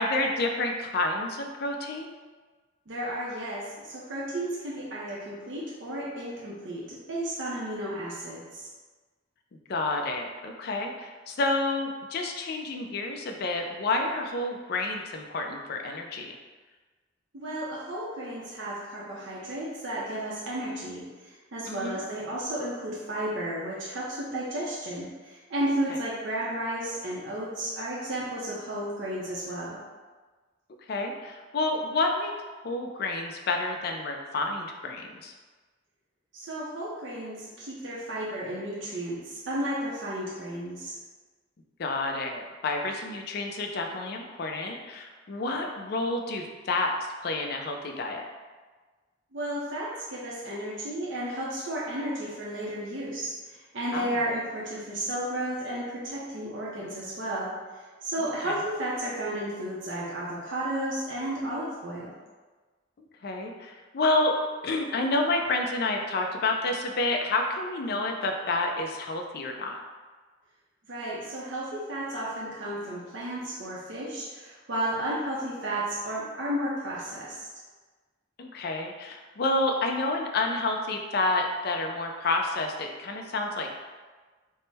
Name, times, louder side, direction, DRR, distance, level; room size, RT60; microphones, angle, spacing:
voice 1, 0.0-2.1 9.7-16.3 21.7-22.0 30.9-32.3 32.6-35.3 41.8-46.9 47.2-48.3 53.9-54.2 58.4-58.5 63.0-64.3 64.6-69.8 78.4-83.7, left 2 dB, 55° left, 3 dB, 0.4 m, -29 dB
voice 2, 2.9-8.7 17.3-29.8 36.3-41.0 49.3-62.1 70.9-77.5, right 1 dB, 70° right, -6 dB, 0.6 m, -33 dB
3.5 x 2.1 x 4.0 m, 1.3 s
head